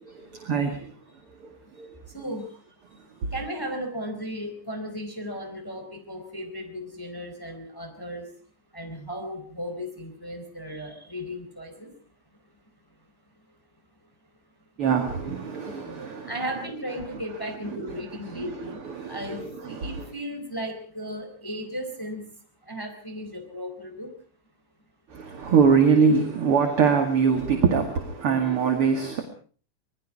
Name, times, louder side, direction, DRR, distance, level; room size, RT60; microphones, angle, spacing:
voice 1, 0.3-0.8 1.4-1.5 1.8-1.9 14.8-16.3 17.7-18.0 18.4-19.9 25.1-29.2, right 6 dB, 50° right, 5 dB, 2.8 m, -23 dB
voice 2, 2.1-2.5 3.2-8.2 8.7-11.9 15.6-22.3 22.6-24.1, equal, 5° left, 4 dB, 3.8 m, -36 dB
26.5 x 20.5 x 4.8 m, 0.43 s
omnidirectional pair, 3.5 m